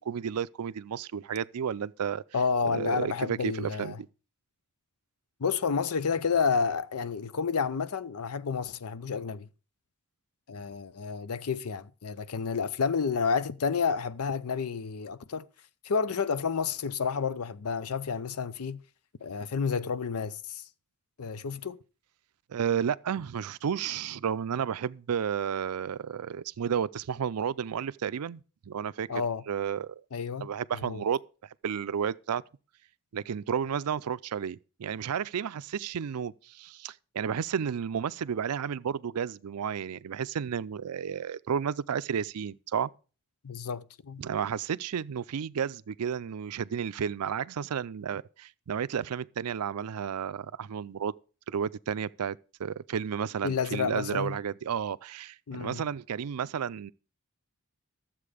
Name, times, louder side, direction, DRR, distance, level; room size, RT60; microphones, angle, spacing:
voice 1, 0.0-2.2 2.6-4.0 22.5-29.1 29.5-30.0 30.4-31.2 31.6-32.4 33.1-42.9 44.2-51.1 51.5-56.9, right 7 dB, 90° right, 0.4 m, -32 dB
voice 2, 2.3-4.0 5.4-9.5 10.5-15.5 15.8-18.8 19.2-20.6 21.2-21.8 29.1-29.4 30.1-30.5 30.7-31.0 43.4-44.2 53.4-54.4 55.5-55.9, left 5 dB, 85° left, 0.6 m, -30 dB
12.5 x 7.5 x 4.9 m
head